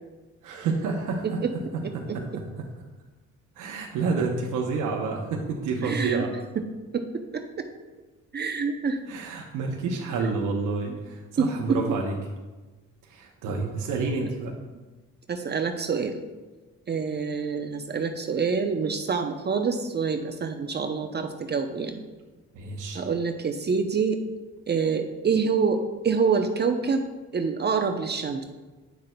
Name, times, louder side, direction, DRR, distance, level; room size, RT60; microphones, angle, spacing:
voice 1, 0.4-1.4 1.9-2.7 3.6-6.3 9.1-12.2 13.1-14.5 22.5-23.0, right 4 dB, 90° right, 1 dB, 0.8 m, -29 dB
voice 2, 1.2-2.2 5.8-6.2 6.9-7.7 8.3-9.0 10.9-11.0 11.4-11.8 14.2-14.3 15.3-16.2 16.9-22.0 22.9-24.2 24.7-27.1 27.3-28.4, right 5 dB, 35° right, 5 dB, 0.6 m, -26 dB
9.3 x 6.3 x 2.2 m, 1.2 s
cardioid pair, 90°, 30 cm